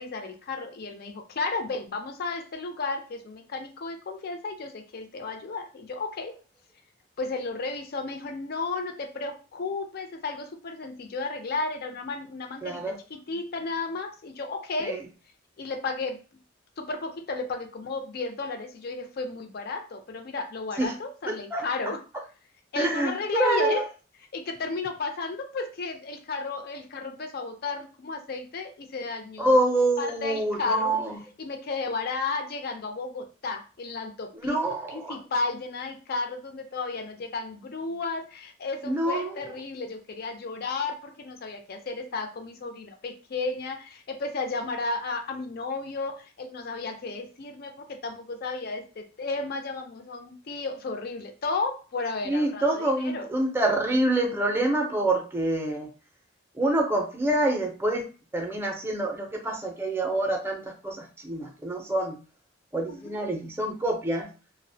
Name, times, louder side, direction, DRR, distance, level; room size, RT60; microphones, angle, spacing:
voice 1, 0.0-6.3 7.2-15.0 15.6-16.2 16.8-22.0 22.7-23.9 24.3-29.6 30.0-31.0 31.4-34.6 34.9-53.3 62.9-63.3, left 3 dB, 50° left, 4 dB, 0.5 m, -33 dB
voice 2, 12.6-13.0 14.8-15.0 20.8-20.9 21.3-21.6 22.8-23.8 29.4-31.2 34.4-35.2 38.8-39.5 52.2-55.9 56.5-58.1 58.3-62.2 62.7-64.3, right 1 dB, 10° right, 2 dB, 0.5 m, -26 dB
2.4 x 2.0 x 2.6 m, 0.35 s
head